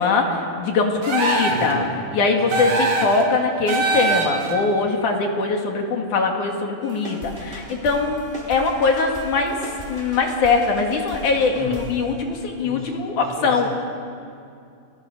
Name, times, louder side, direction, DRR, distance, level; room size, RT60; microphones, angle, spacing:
voice 1, 0.0-1.8 2.1-9.6 9.9-13.7, left 4 dB, 65° left, 2 dB, 3.4 m, -22 dB
sound 1, 1.0-1.7 2.5-3.2 3.7-4.5, right 2 dB, 50° right, 3.9 m, -22 dB
voice 2, 1.5-1.9 2.4-2.7 11.5-11.8 12.6-13.7, equal, 15° left, -1 dB, 5.4 m, -35 dB
sound 2, 6.8-12.7, equal, 15° right, 3.8 m, -38 dB
29.5 x 20.0 x 6.7 m, 2.5 s
omnidirectional pair, 4.0 m